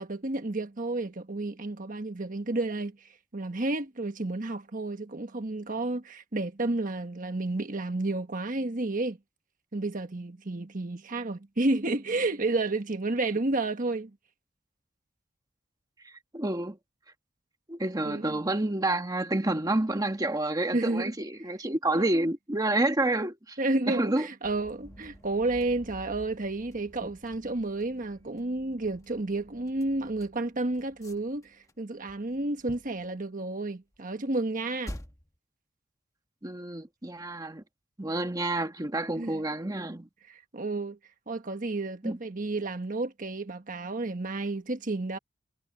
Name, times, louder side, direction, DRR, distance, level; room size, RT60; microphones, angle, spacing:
voice 1, 0.0-9.2 9.7-14.1 18.0-18.4 20.7-21.1 21.9-22.3 23.6-34.9 39.2-39.4 40.3-41.0 41.3-45.2, right 2 dB, 45° right, 1.3 m, -31 dB
voice 2, 16.0-16.8 17.7-23.6 23.9-24.3 36.4-37.6 38.0-40.1 42.0-42.2, right 2 dB, 20° right, 1.3 m, -29 dB
sound 1, 24.4-31.7 32.0-33.1 33.9-34.0 34.8-35.4, equal, 15° left, 1.4 m, -49 dB
head